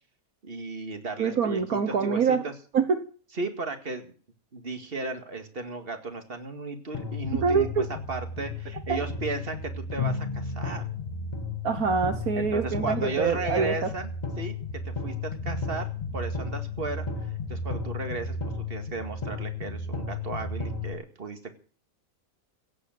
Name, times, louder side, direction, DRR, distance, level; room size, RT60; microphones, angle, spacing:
voice 1, 0.4-1.6 1.9-2.5 3.4-4.1 4.5-7.7 8.1-10.8 12.4-14.1 14.4-14.6 14.8-15.9 16.1-21.5, right 3 dB, 40° right, 7 dB, 2.3 m, -35 dB
voice 2, 1.2-2.4 2.7-3.1 7.3-7.8 8.9-9.0 11.6-13.9, right 5 dB, 70° right, 8 dB, 1.7 m, -25 dB
sound 1, 6.9-20.9, left 3 dB, 30° left, 2.2 m, -33 dB
16.5 x 8.4 x 7.7 m, 0.41 s
omnidirectional pair, 1.6 m